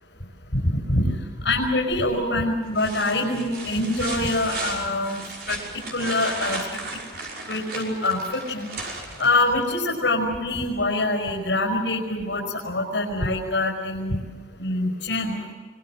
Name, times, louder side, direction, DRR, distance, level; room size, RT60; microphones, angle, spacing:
voice 1, 0.5-1.1 1.4-5.2 5.5-5.6 5.9-6.6 7.5-8.7 9.2-14.2 14.6-15.5, left 2 dB, 80° left, -1 dB, 5.7 m, -24 dB
sound 1, 1.9-2.3 2.7-9.7 11.5-11.6, right 3 dB, 60° right, 6.0 m, -35 dB
25.5 x 23.0 x 7.8 m, 1.4 s
head